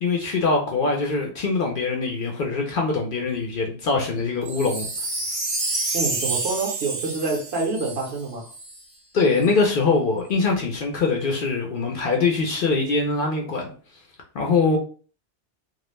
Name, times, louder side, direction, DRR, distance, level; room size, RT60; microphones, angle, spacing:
voice 1, 0.0-4.9 9.1-13.7 14.3-14.8, left 4 dB, 60° left, 1 dB, 0.6 m, -23 dB
Wind chime, 4.4-8.8 9.4-9.5, right 3 dB, 40° right, 0.6 m, -29 dB
voice 2, 5.9-8.5, right 3 dB, 65° right, 2 dB, 0.8 m, -27 dB
2.3 x 2.0 x 3.1 m, 0.40 s
omnidirectional pair, 1.2 m